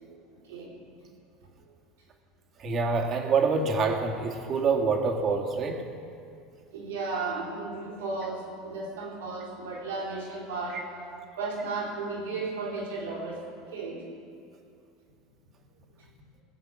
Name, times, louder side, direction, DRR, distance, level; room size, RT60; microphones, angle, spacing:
voice 1, 0.1-0.7 6.7-10.9 11.4-13.4 13.7-14.1, right 3 dB, 85° right, -4 dB, 3.8 m, -34 dB
voice 2, 2.6-5.8, right 4 dB, 45° right, 2 dB, 2.1 m, -26 dB
20.0 x 8.1 x 6.2 m, 2.5 s
hypercardioid pair, 90°, 0 cm